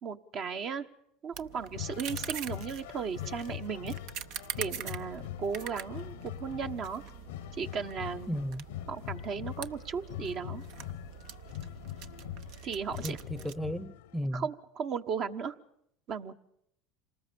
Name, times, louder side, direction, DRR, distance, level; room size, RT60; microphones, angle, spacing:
voice 1, 0.0-0.9 1.2-4.0 4.6-7.0 7.5-8.3 8.9-10.6 12.6-13.2 14.3-15.6 16.1-16.3, right 6 dB, 50° right, 7 dB, 1.3 m, -36 dB
sound 1, 1.3-13.5, right 9 dB, 65° right, 0.9 m, -44 dB
sound 2, 1.5-14.2, left 14 dB, 85° left, 0.8 m, -43 dB
voice 2, 8.3-8.7 13.0-14.5, equal, 5° right, 14 dB, 0.9 m, -35 dB
27.0 x 19.5 x 7.1 m, 0.73 s
hypercardioid pair, 95°, 0 cm